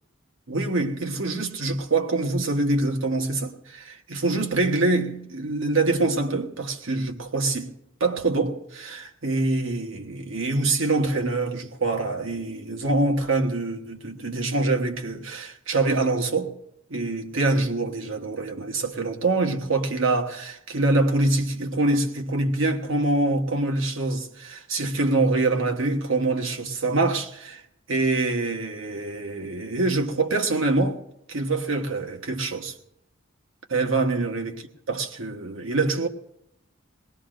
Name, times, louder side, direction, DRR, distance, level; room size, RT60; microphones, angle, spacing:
voice 1, 0.5-7.7 8.0-16.5 16.9-27.6 27.9-31.0 31.3-32.7 33.7-34.6 34.9-36.1, right 2 dB, 85° right, 1.3 m, -25 dB
21.0 x 19.0 x 2.5 m
head